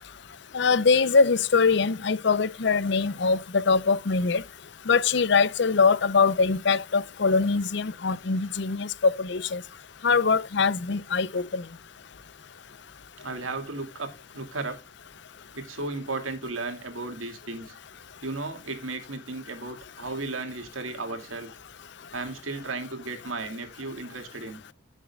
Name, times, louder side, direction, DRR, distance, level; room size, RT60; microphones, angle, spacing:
voice 1, 0.5-4.4 4.9-9.6 10.0-11.6, left 4 dB, 60° left, 0.6 m, -23 dB
voice 2, 13.2-14.8 15.5-17.8 18.2-21.5 22.1-24.6, right 3 dB, 85° right, 2.4 m, -35 dB
14.0 x 6.7 x 2.3 m
head